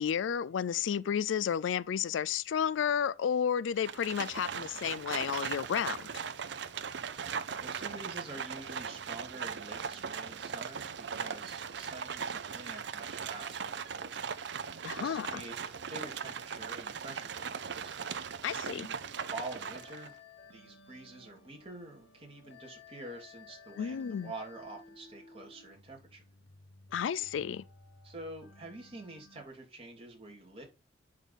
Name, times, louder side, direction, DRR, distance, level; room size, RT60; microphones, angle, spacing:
voice 1, 0.0-6.1 14.8-15.4 18.4-18.9 23.8-24.3 26.9-27.6, left 8 dB, 90° left, 0.4 m, -32 dB
Livestock farm animals working animals, 3.8-20.1, right 6 dB, 65° right, 0.6 m, -39 dB
voice 2, 7.6-15.5 15.9-18.4 18.7-19.0 19.3-20.1 20.5-26.2 28.0-30.6, right 2 dB, 30° right, 2.8 m, -47 dB
sound 1, 18.9-29.4, left 4 dB, 75° left, 1.0 m, -56 dB
10.5 x 3.7 x 4.2 m
head